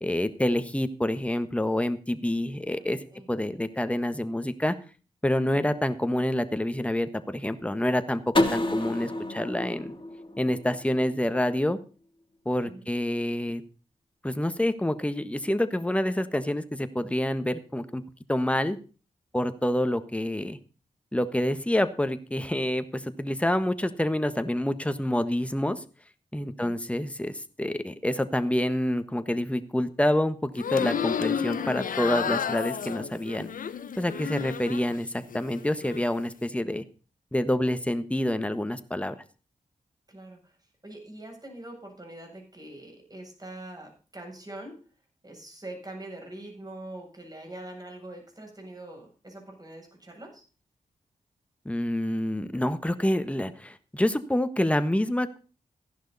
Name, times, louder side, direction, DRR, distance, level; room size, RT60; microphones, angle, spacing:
voice 1, 0.0-3.0 3.3-4.7 5.2-9.9 10.4-11.8 12.4-13.6 14.2-18.0 18.3-18.8 19.3-20.6 21.1-25.8 26.3-33.5 34.0-36.8 37.3-39.1 51.6-55.4, left 1 dB, 10° left, 10 dB, 1.4 m, -27 dB
voice 2, 2.7-3.3 12.6-12.8 26.6-26.8 40.1-40.6 40.8-44.7 45.2-50.4, right 1 dB, 25° right, 2 dB, 7.9 m, -43 dB
sound 1, 8.3-11.2, left 1 dB, 35° left, 3.1 m, -29 dB
sound 2, 30.5-35.0 35.3-36.1, left 7 dB, 75° left, 0.8 m, -31 dB
15.0 x 11.0 x 4.2 m, 0.36 s
cardioid pair, 55°, 14 cm